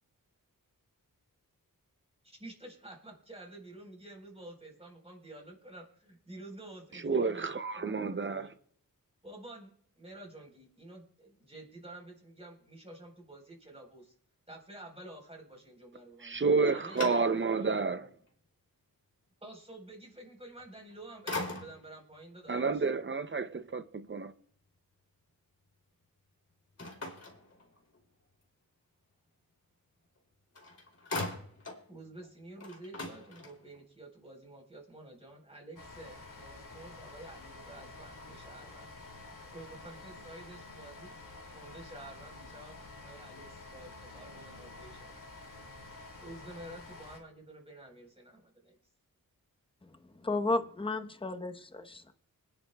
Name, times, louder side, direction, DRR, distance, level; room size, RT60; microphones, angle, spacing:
voice 1, 2.2-7.4 7.8-8.5 9.2-14.1 14.5-17.2 17.6-18.1 19.4-22.7 31.9-38.9 39.5-41.1 41.5-45.2 46.1-48.8, right 1 dB, 15° right, 3.9 m, -50 dB
voice 2, 6.9-8.5 16.2-18.1 22.5-24.3, right 4 dB, 35° right, 0.5 m, -30 dB
sound 1, 16.3-17.7 18.3-18.4 20.6-20.9 21.3-22.0 26.8-28.1 30.2-30.3 30.5-31.9 32.2-32.3 32.6-33.8, left 2 dB, 45° left, 2.8 m, -40 dB
sound 2, 35.8-47.2, left 3 dB, 60° left, 2.5 m, -49 dB
voice 3, 50.2-52.1, left 2 dB, 15° left, 0.9 m, -33 dB
25.0 x 10.5 x 2.2 m
wide cardioid pair, 100°, 35 cm